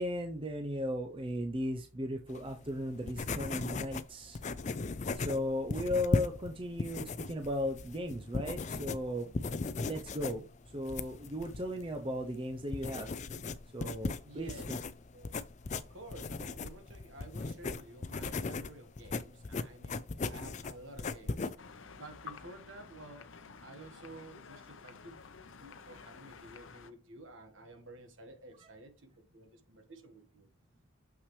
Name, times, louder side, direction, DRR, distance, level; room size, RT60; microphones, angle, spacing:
voice 1, 0.0-4.4 5.2-9.3 9.8-10.4 10.7-13.1 13.7-14.8, left 1 dB, 25° right, 0.6 m, -36 dB
sound 1, 2.3-21.6, left 3 dB, 35° left, 0.4 m, -38 dB
voice 2, 14.2-14.7 15.1-15.4 15.7-20.0 20.3-21.5 22.0-23.2 23.6-25.2 25.5-28.9 29.3-30.5, right 2 dB, 65° right, 1.4 m, -51 dB
sound 2, 21.6-26.9, left 5 dB, 70° left, 0.7 m, -51 dB
6.7 x 5.9 x 3.1 m
head